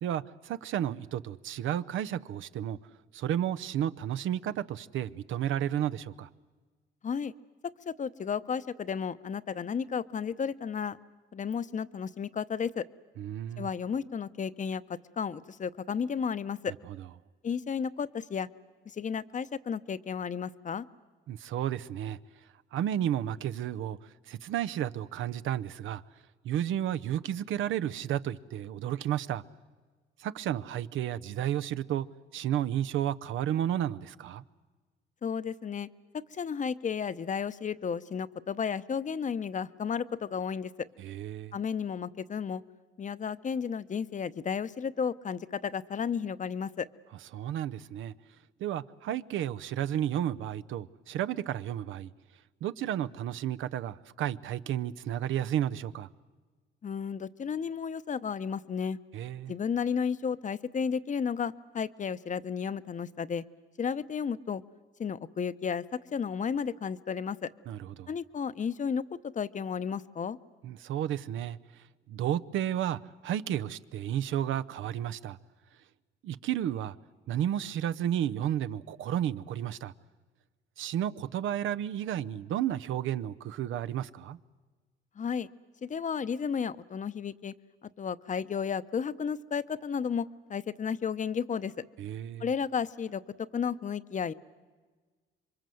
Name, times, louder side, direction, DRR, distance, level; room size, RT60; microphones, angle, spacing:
voice 1, 0.0-2.8 3.1-6.3 13.2-13.7 16.7-17.0 21.3-22.2 22.7-24.0 24.3-26.0 26.4-29.4 30.2-32.1 32.3-34.4 41.0-41.6 47.3-48.1 48.6-52.1 52.6-56.1 59.1-59.5 67.7-68.1 70.6-71.6 72.1-75.4 76.2-76.9 77.3-79.9 80.8-84.4 92.0-92.5, right 11 dB, 80° right, 0.7 m, -32 dB
voice 2, 7.6-11.0 11.3-12.9 13.6-16.7 17.4-18.5 18.9-20.9 35.2-35.9 36.3-40.7 41.5-42.6 43.0-46.9 56.8-59.0 59.5-63.4 63.8-64.6 65.0-65.8 66.1-67.5 68.1-69.0 69.3-70.4 85.2-85.5 85.8-87.5 88.0-91.7 92.4-94.3, left 6 dB, 40° left, 0.8 m, -33 dB
27.0 x 23.5 x 7.8 m
cardioid pair, 90°, 20 cm